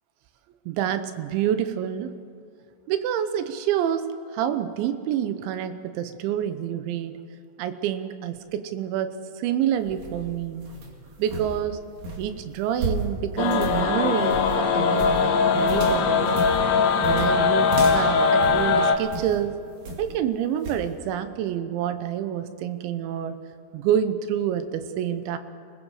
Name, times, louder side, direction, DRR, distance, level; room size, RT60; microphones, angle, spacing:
voice 1, 0.7-2.1 2.9-7.2 7.6-10.6 11.2-11.8 12.2-16.3 17.0-19.5 20.0-23.4 23.7-25.4, right 10 dB, 85° right, 10 dB, 3.3 m, -27 dB
sound 1, 9.7-19.4 19.8-20.2 20.6-20.9, right 2 dB, 50° right, 3.1 m, -34 dB
sound 2, 13.4-19.0, left 5 dB, 70° left, 2.6 m, -21 dB
28.5 x 20.5 x 4.9 m, 2.4 s
omnidirectional pair, 5.1 m